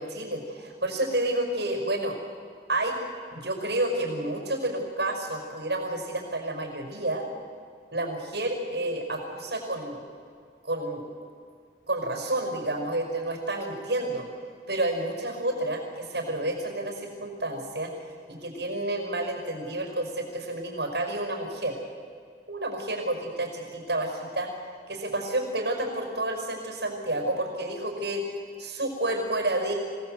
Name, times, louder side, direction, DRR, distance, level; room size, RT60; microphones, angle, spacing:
voice 1, 0.0-2.2 2.7-3.0 3.3-7.3 7.9-10.0 10.6-11.0 11.9-14.3 14.7-17.9 18.3-21.8 22.5-24.5 24.9-28.2 28.6-29.7, right 1 dB, 70° right, 3 dB, 5.2 m, -30 dB
26.0 x 17.0 x 7.9 m, 2.1 s
head